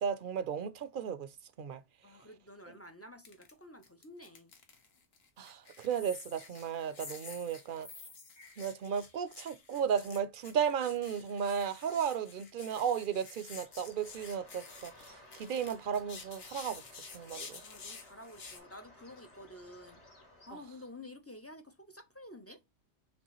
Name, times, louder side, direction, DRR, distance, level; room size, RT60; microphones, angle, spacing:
voice 1, 0.0-1.3 1.6-1.8 5.4-7.9 8.6-14.9 15.3-16.8 17.1-17.6, right 7 dB, 55° right, 0.6 m, -34 dB
voice 2, 2.0-4.5 17.6-20.0 20.5-22.6, left 1 dB, 25° left, 0.3 m, -51 dB
sound 1, 3.2-3.5 3.8-18.6, left 4 dB, 60° left, 1.2 m, -51 dB
sound 2, 5.9-9.8, left 4 dB, 45° left, 1.2 m, -50 dB
Bird, 13.4-21.1, left 1 dB, 80° left, 2.3 m, -58 dB
5.3 x 3.2 x 3.0 m
omnidirectional pair, 1.2 m